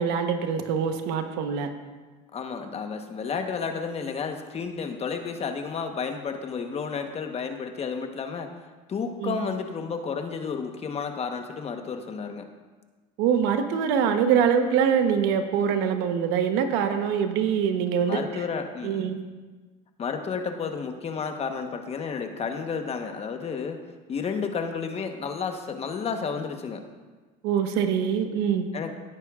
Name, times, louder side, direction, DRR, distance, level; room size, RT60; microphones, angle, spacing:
voice 1, 0.0-1.7 9.2-9.4 13.2-18.2 18.8-19.2 27.4-28.7, right 7 dB, 80° right, 7 dB, 1.1 m, -24 dB
voice 2, 2.3-8.5 8.9-12.5 18.1-19.1 20.0-26.8 28.7-28.9, left 5 dB, 35° left, 5 dB, 1.1 m, -31 dB
17.5 x 8.8 x 2.5 m, 1.3 s
supercardioid pair, 105°, 17 cm